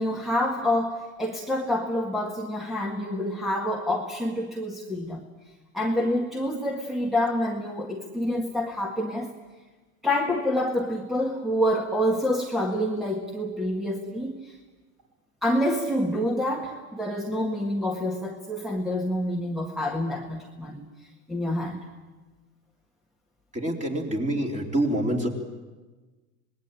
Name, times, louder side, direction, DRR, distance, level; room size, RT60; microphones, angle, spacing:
voice 1, 0.0-5.2 5.7-9.3 10.0-14.6 15.4-20.9 21.3-21.8, left 1 dB, ahead, -1 dB, 1.8 m, -27 dB
voice 2, 23.5-25.3, right 1 dB, 15° right, 1 dB, 4.0 m, -26 dB
25.5 x 20.0 x 9.0 m, 1.3 s
supercardioid pair, 130°, 44 cm